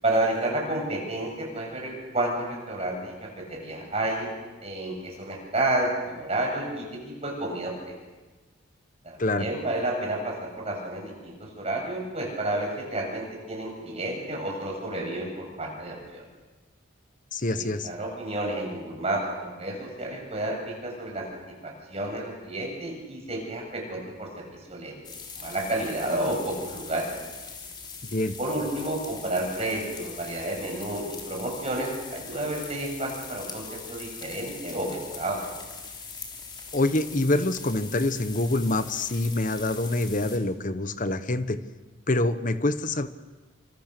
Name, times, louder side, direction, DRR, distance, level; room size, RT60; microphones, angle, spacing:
voice 1, 0.0-4.3 4.6-7.9 9.0-16.2 17.5-21.3 21.6-25.0 25.4-27.1 28.4-35.4, right 1 dB, 30° right, 0 dB, 7.6 m, -31 dB
voice 2, 17.3-17.9 28.0-28.3 36.7-41.6 42.1-43.1, left 2 dB, 40° left, 11 dB, 1.2 m, -26 dB
sound 1, 25.0-40.4, left 5 dB, 20° left, 3.7 m, -42 dB
28.0 x 26.0 x 6.8 m, 1.2 s
head